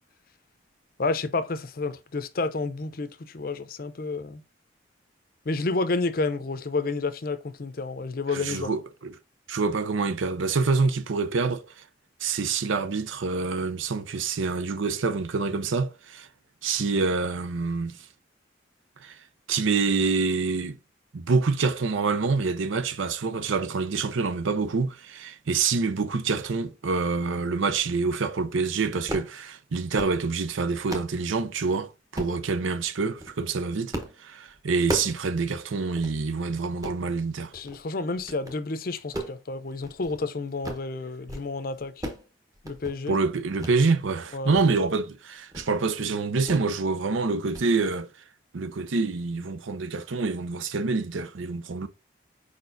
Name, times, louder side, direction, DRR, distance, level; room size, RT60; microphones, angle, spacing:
voice 1, 1.0-4.4 5.5-8.7 37.5-42.0 42.6-43.2 44.3-44.6, left 3 dB, 50° left, 0.5 m, -30 dB
voice 2, 8.3-9.2 9.5-11.7 12.2-16.3 16.6-18.0 19.0-19.2 19.5-20.8 21.1-33.9 34.2-37.5 43.1-48.1 48.5-51.9, right 4 dB, 85° right, 0.6 m, -26 dB
sound 1, 29.1-29.3 29.8-30.2 30.6-31.2 32.1-32.4 33.0-33.3 33.9-34.2 34.5-35.2 35.6-35.7 36.0-36.1 36.6-37.0 37.5-37.8 38.2-38.6 39.0-40.2 40.5-40.9 41.2-41.5 41.7-42.3 42.5-43.0 43.6-43.8 44.2-44.6 45.0-45.1 45.5-45.7 46.5-46.7 47.0-47.2 47.5-47.7, right 1 dB, 20° right, 0.9 m, -35 dB
4.8 x 4.3 x 2.5 m
head